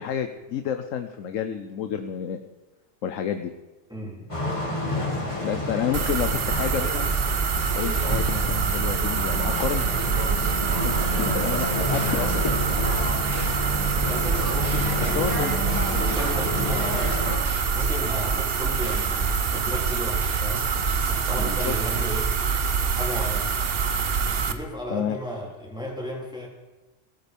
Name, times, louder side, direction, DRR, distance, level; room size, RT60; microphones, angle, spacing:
voice 1, 0.0-2.4 3.0-3.5 5.4-7.1 7.7-9.9 10.8-13.0 15.0-15.5 15.9-16.0 21.4-21.7 24.9-25.2, left 8 dB, 75° left, 8 dB, 1.2 m, -30 dB
voice 2, 3.9-4.3 14.0-15.6 15.9-17.2 17.7-20.7 21.3-22.3 22.9-23.5 24.5-26.5, equal, 5° right, -3 dB, 3.6 m, -34 dB
sound 1, 4.3-17.4, left 1 dB, 25° left, 2.7 m, -30 dB
sound 2, 5.9-24.5, right 6 dB, 50° right, 1.1 m, -25 dB
sound 3, 11.2-22.3, right 2 dB, 85° right, 4.1 m, -38 dB
17.5 x 13.5 x 5.4 m, 1.1 s
omnidirectional pair, 1.3 m